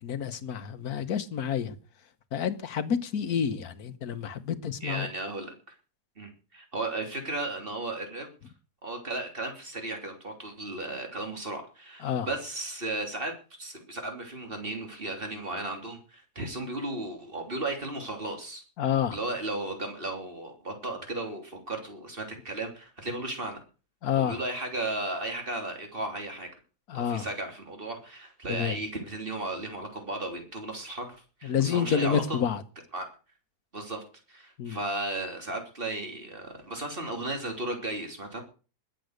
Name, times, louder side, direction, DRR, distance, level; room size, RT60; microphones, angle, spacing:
voice 1, 0.0-1.8 2.3-5.1 12.0-12.3 18.8-19.2 24.0-24.4 26.9-27.3 28.5-28.8 31.4-32.6 34.6-34.8, left 8 dB, 70° left, 1.6 m, -29 dB
voice 2, 4.8-5.8 6.2-8.3 8.8-18.6 19.1-23.6 24.1-26.5 26.9-32.4 32.9-33.1 33.7-38.4, right 2 dB, 35° right, 3.5 m, -35 dB
20.5 x 7.8 x 6.5 m
omnidirectional pair, 1.7 m